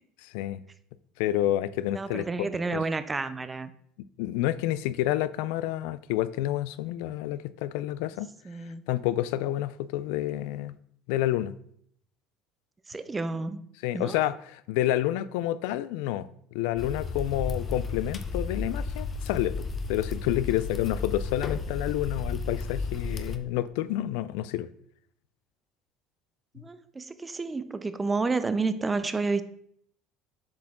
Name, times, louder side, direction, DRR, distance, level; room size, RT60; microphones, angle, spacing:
voice 1, 1.2-2.5 2.7-2.8 4.2-8.3 8.9-10.8 11.1-11.5 13.8-24.7, left 14 dB, 85° left, 0.3 m, -29 dB
voice 2, 1.9-3.7 8.4-8.8 12.9-13.6 13.9-14.2 26.5-29.4, right 3 dB, 20° right, 0.5 m, -30 dB
sound 1, 16.8-23.4, left 4 dB, 30° left, 0.6 m, -33 dB
7.5 x 4.7 x 3.6 m
supercardioid pair, 105°, 0 cm